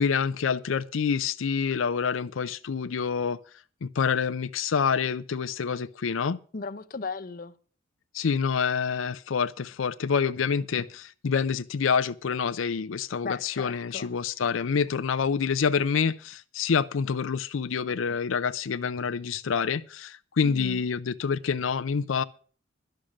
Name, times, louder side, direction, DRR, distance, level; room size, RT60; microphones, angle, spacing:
voice 1, 0.0-3.4 3.8-6.4 8.1-22.2, left 6 dB, 85° left, 0.5 m, -27 dB
voice 2, 6.5-7.5 13.2-14.2 20.4-20.8, left 4 dB, 45° left, 0.7 m, -36 dB
11.5 x 6.5 x 8.5 m
head